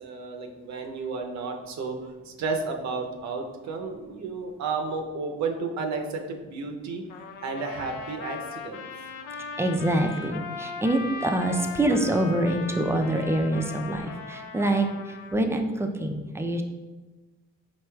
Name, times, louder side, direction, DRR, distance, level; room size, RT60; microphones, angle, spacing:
voice 1, 0.0-7.0 7.4-8.9, right 4 dB, 65° right, 3 dB, 0.6 m, -32 dB
Trumpet, 7.1-15.4, left 5 dB, 85° left, 0.5 m, -39 dB
voice 2, 9.6-16.6, right 1 dB, 10° right, 4 dB, 0.4 m, -25 dB
4.6 x 4.1 x 2.2 m, 1.2 s
cardioid pair, 90°, 30 cm